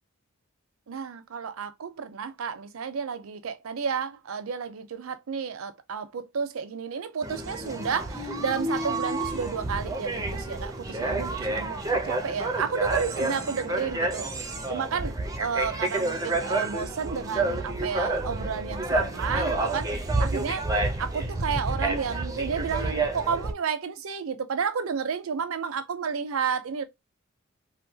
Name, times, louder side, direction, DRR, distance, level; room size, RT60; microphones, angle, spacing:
voice 1, 0.9-19.9 20.2-20.7 21.0-26.8, right 6 dB, 85° right, 0.5 m, -31 dB
sound 1, 7.2-23.5, right 2 dB, 15° right, 0.4 m, -29 dB
2.8 x 2.1 x 2.7 m
head